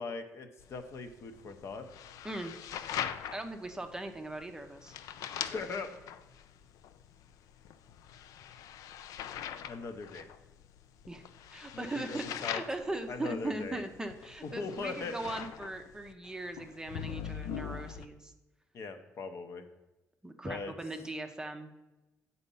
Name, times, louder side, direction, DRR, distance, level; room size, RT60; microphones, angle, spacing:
voice 1, 0.0-1.8 5.5-5.9 9.7-10.3 11.7-12.6 13.1-13.8 14.4-15.1 18.7-19.7 20.4-20.7, left 4 dB, 50° left, 7 dB, 0.7 m, -40 dB
sound 1, 0.6-18.1, left 9 dB, 90° left, 0.4 m, -43 dB
voice 2, 3.3-5.0 11.1-11.2 11.5-18.3 20.2-21.7, right 2 dB, 10° right, 5 dB, 0.5 m, -39 dB
8.1 x 4.1 x 5.4 m, 1.0 s
cardioid pair, 135°, 6 cm